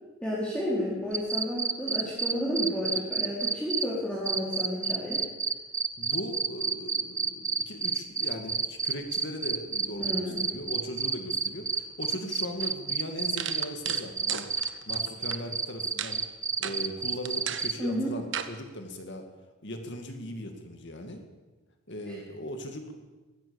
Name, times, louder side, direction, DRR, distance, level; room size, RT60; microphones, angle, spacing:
voice 1, 0.2-5.2 10.0-10.4 17.8-18.1 22.1-22.2, equal, 5° left, -7 dB, 4.1 m, -31 dB
sound 1, 1.1-3.8 4.3-17.7, right 5 dB, 15° right, 0.8 m, -29 dB
voice 2, 6.0-14.5 14.9-16.2 16.6-19.3 19.6-21.2 21.9-23.1, equal, 55° left, 5 dB, 2.4 m, -38 dB
sound 2, 12.6-12.7 13.4-15.4 16.0-16.2 16.6-16.8 17.3-17.7 18.3-18.5, right 9 dB, 55° right, 1.3 m, -34 dB
22.5 x 16.5 x 7.2 m, 1.2 s
head